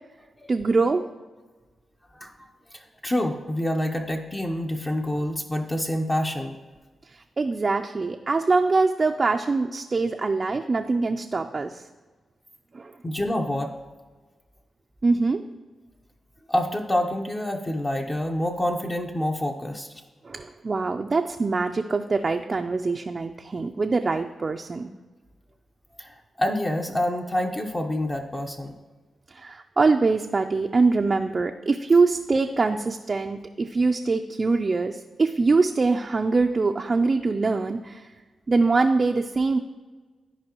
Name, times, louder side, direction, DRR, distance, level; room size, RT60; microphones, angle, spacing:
voice 1, 0.5-1.0 7.1-11.8 12.7-12.9 15.0-15.4 20.2-24.9 29.3-38.1 38.5-39.6, right 3 dB, 40° right, 4 dB, 0.4 m, -23 dB
voice 2, 2.1-6.5 13.0-13.7 16.5-19.9 26.0-28.7, left 1 dB, 25° left, 2 dB, 0.8 m, -27 dB
14.0 x 4.7 x 3.0 m, 1.3 s
cardioid pair, 65°, 0 cm